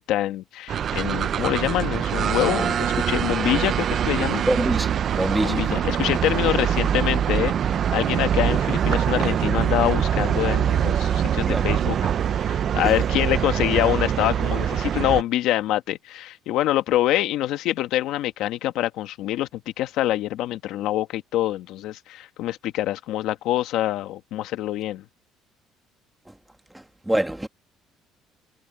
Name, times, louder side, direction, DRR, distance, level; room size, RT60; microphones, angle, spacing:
voice 1, 0.0-4.4 5.1-12.0 12.4-25.0, left 14 dB, 70° left, 1.4 m, -25 dB
sound 1, 0.7-15.2, right 9 dB, 40° right, 0.5 m, -23 dB
voice 2, 4.5-5.6 11.4-11.7 12.8-12.9 27.1-27.5, right 1 dB, 5° right, 1.8 m, -24 dB
cardioid pair, 145°, 0 cm